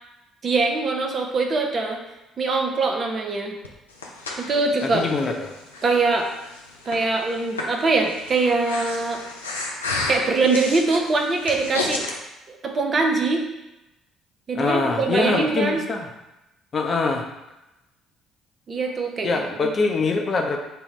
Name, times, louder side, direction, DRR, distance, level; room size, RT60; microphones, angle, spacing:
voice 1, 0.4-2.0 2.4-3.5 4.4-5.0 5.8-6.3 6.9-9.2 10.1-12.1 12.5-13.4 14.5-15.8 18.7-19.7, right 3 dB, 40° right, 3 dB, 0.6 m, -23 dB
Breathing, 3.6-12.2, left 2 dB, 90° left, 0.4 m, -32 dB
voice 2, 4.8-5.5 14.6-16.1 16.7-17.2 19.2-20.6, left 3 dB, 40° left, 2 dB, 0.6 m, -23 dB
3.5 x 2.2 x 4.2 m, 0.96 s
hypercardioid pair, 50°, 0 cm